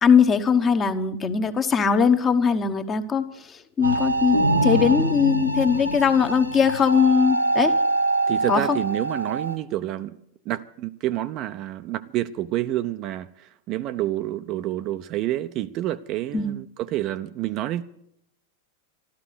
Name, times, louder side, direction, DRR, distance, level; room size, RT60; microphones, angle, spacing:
voice 1, 0.0-7.7 8.5-8.8 16.3-16.5, left 6 dB, 25° left, 9 dB, 1.1 m, -20 dB
sound 1, 3.8-9.6, right 2 dB, 90° right, 1.4 m, -24 dB
voice 2, 8.3-10.2 10.5-17.8, right 14 dB, 40° right, 11 dB, 0.6 m, -28 dB
13.0 x 13.0 x 6.8 m, 0.73 s
figure-of-eight pair, 90°, 0 cm